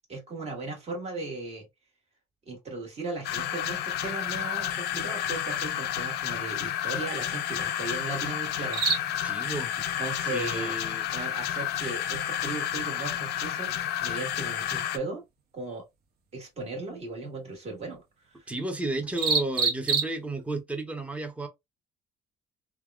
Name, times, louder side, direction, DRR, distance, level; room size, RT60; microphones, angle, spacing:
voice 1, 0.1-1.7 2.5-9.4 10.0-10.7 11.1-15.2 15.5-15.8 16.3-18.0 18.3-18.5, right 3 dB, 40° right, 1.5 m, -37 dB
sound 1, 3.1-20.6, right 5 dB, 65° right, 0.9 m, -37 dB
sound 2, 3.2-15.0, left 11 dB, 75° left, 0.4 m, -31 dB
voice 2, 9.2-9.7 10.3-11.0 18.5-21.5, right 2 dB, 10° right, 0.7 m, -32 dB
3.3 x 2.3 x 2.3 m
cardioid pair, 110°, 17 cm